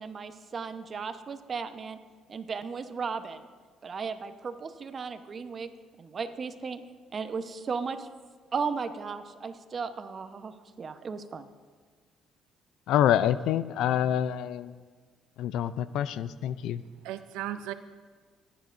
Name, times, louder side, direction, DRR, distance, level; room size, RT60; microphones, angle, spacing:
voice 1, 0.0-2.0 2.3-3.4 3.8-5.7 6.0-6.8 7.1-8.1 8.5-10.5 10.8-11.5, right 5 dB, 45° right, 9 dB, 0.9 m, -35 dB
voice 2, 12.9-14.8 15.4-16.8, left 10 dB, 80° left, 15 dB, 0.4 m, -26 dB
voice 3, 16.5-17.7, right 13 dB, 90° right, 11 dB, 0.5 m, -38 dB
26.0 x 9.9 x 2.6 m, 1.5 s
supercardioid pair, 80°, 0 cm